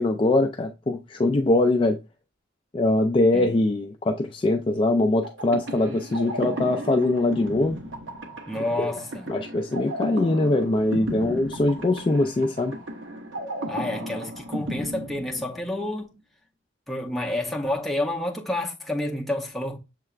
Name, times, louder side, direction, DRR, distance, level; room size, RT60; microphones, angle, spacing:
voice 1, 0.0-2.0 2.7-7.8 8.8-8.9 9.3-12.7, left 2 dB, 25° left, 0.3 m, -22 dB
sound 1, 5.2-15.9, right 1 dB, 85° right, 0.9 m, -35 dB
voice 2, 8.5-9.3 13.7-16.2 16.9-19.8, left 1 dB, ahead, 0.7 m, -29 dB
6.6 x 3.2 x 2.4 m
head